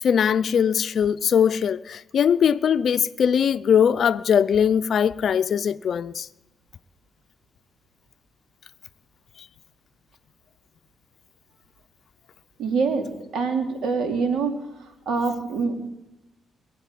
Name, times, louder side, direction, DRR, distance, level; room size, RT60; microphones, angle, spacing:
voice 1, 0.0-6.3, left 8 dB, 60° left, 0.5 m, -21 dB
voice 2, 12.6-13.1 13.3-14.6 15.1-15.9, right 4 dB, 75° right, 2.8 m, -24 dB
21.0 x 9.0 x 7.6 m
cardioid pair, 85°, 0 cm